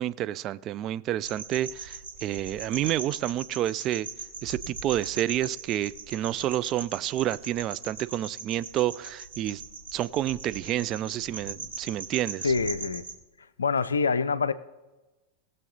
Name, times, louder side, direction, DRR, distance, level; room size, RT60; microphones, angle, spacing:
voice 1, 0.0-4.1 4.4-9.6 9.9-12.5, right 13 dB, 35° right, 0.4 m, -29 dB
sound 1, 1.2-13.1, right 5 dB, 70° right, 1.4 m, -40 dB
voice 2, 12.4-13.0 13.6-14.5, left 5 dB, 75° left, 0.5 m, -25 dB
19.5 x 6.9 x 4.1 m
figure-of-eight pair, 90°, 0 cm